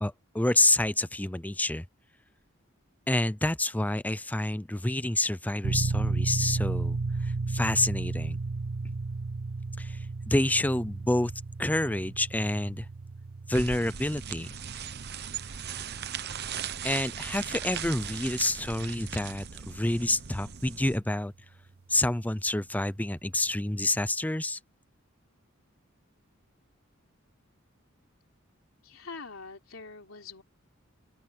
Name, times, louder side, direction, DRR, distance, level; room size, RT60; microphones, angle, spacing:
voice 1, 0.0-1.8 3.1-8.4 8.8-8.9 9.8-11.3 11.6-12.9 13.5-14.5 16.8-21.3 21.9-24.6, left 1 dB, 10° left, 0.6 m, -28 dB
sound 1, 5.6-20.1, right 3 dB, 80° right, 0.7 m, -34 dB
sound 2, 13.5-21.0, right 8 dB, 55° right, 1.0 m, -38 dB
voice 2, 28.8-30.4, left 4 dB, 80° left, 3.5 m, -44 dB
open air
head